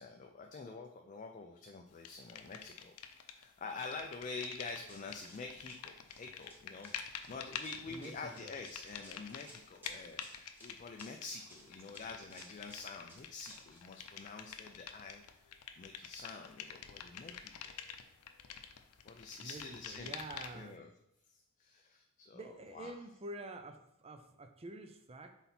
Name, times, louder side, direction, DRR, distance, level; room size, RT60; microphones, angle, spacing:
voice 1, 0.0-17.5 19.0-20.1 20.5-20.9 21.3-22.5 22.7-23.0, left 4 dB, 35° left, 3 dB, 0.4 m, -47 dB
sound 1, 2.1-3.5 3.7-20.7, left 8 dB, 85° left, 0.6 m, -48 dB
Run, 4.9-13.8, equal, 10° right, 1.2 m, -59 dB
voice 2, 7.9-8.6 19.4-20.8 22.3-25.4, right 2 dB, 25° right, 7 dB, 0.5 m, -48 dB
5.8 x 4.0 x 4.2 m, 0.79 s
head